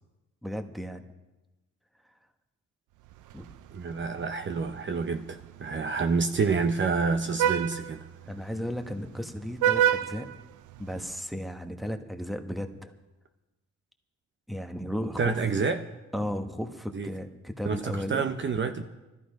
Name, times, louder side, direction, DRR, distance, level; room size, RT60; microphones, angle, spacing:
voice 1, 0.4-1.0 3.3-3.5 8.3-10.3 10.8-12.9 14.5-15.4 16.1-18.3, equal, ahead, 6 dB, 1.4 m, -34 dB
Vehicle horn car horn honking, 3.1-11.2, right 10 dB, 90° right, 0.6 m, -32 dB
voice 2, 3.7-8.1 15.2-15.9 16.9-17.1 17.6-18.8, right 5 dB, 40° right, 8 dB, 0.9 m, -28 dB
17.5 x 14.0 x 5.2 m, 1.1 s
cardioid pair, 90°, 30 cm